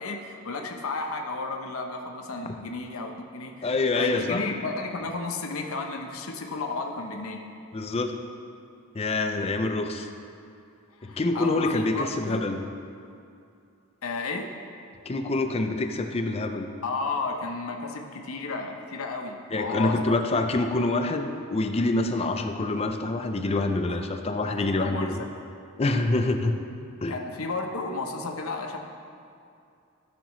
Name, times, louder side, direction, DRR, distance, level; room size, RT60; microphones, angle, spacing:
voice 1, 0.0-7.4 11.0-12.4 14.0-14.5 16.8-20.0 20.3-20.4 23.9-24.0 24.5-25.3 27.1-28.8, left 3 dB, 75° left, 3 dB, 0.8 m, -33 dB
voice 2, 3.6-4.4 7.7-8.2 8.9-10.1 11.0-12.6 15.1-16.7 19.5-25.2 25.8-26.6 27.0-27.2, left 2 dB, 30° left, 6 dB, 0.5 m, -26 dB
14.0 x 6.0 x 3.1 m, 2.5 s
head